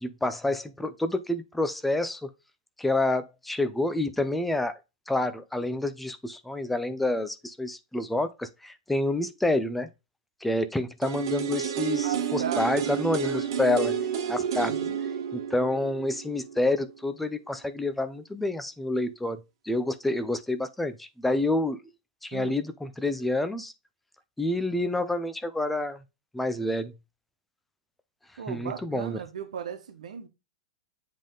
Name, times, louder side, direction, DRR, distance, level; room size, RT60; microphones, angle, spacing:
voice 1, 0.0-2.3 2.8-4.8 5.1-9.9 10.4-13.9 14.3-14.7 15.3-21.8 22.2-23.7 24.4-26.0 26.3-26.9 28.5-29.2, left 2 dB, 5° left, 0.4 m, -28 dB
sound 1, 11.0-16.9 17.2-17.3, right 8 dB, 45° right, 1.2 m, -30 dB
voice 2, 12.0-13.2 14.6-15.0 22.3-22.6 28.4-30.3, right 8 dB, 90° right, 1.4 m, -37 dB
7.6 x 3.5 x 3.8 m
supercardioid pair, 180°, 4 cm